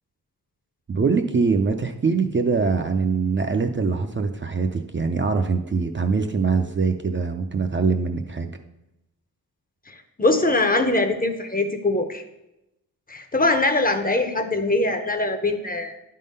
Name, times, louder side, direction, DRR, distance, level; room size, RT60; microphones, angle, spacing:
voice 1, 0.9-8.6, right 4 dB, 35° right, 5 dB, 0.4 m, -23 dB
voice 2, 9.9-12.2 13.1-15.9, left 2 dB, 25° left, 7 dB, 0.6 m, -22 dB
10.0 x 3.7 x 5.3 m, 0.91 s
wide cardioid pair, 150°, 36 cm